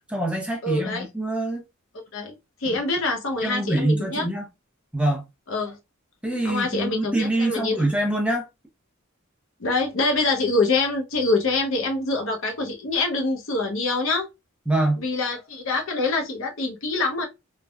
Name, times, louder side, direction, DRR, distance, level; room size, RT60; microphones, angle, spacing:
voice 1, 0.1-1.6 2.7-2.8 3.4-4.5 4.9-5.2 6.2-8.5 14.7-15.0, right 1 dB, 5° right, 0.5 m, -24 dB
voice 2, 0.6-1.1 2.1-4.3 5.5-5.8 6.4-7.9 9.6-14.3 15.0-17.3, left 3 dB, 65° left, 0.7 m, -25 dB
3.3 x 2.1 x 2.2 m
head